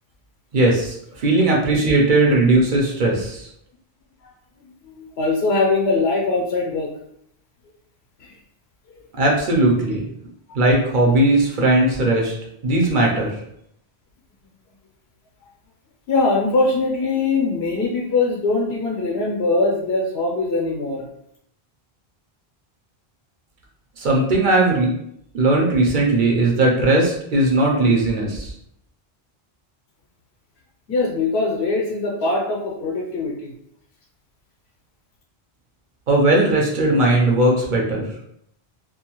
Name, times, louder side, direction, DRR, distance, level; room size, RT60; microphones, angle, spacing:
voice 1, 0.5-3.5 9.2-10.0 10.5-12.3 12.6-13.4 24.0-24.9 25.3-28.5 36.1-38.1, right 2 dB, 55° right, -2 dB, 0.7 m, -18 dB
voice 2, 4.8-6.9 8.2-8.3 16.1-21.1 30.9-33.5, left 3 dB, 85° left, -2 dB, 0.9 m, -22 dB
2.4 x 2.3 x 2.9 m, 0.73 s
omnidirectional pair, 1.0 m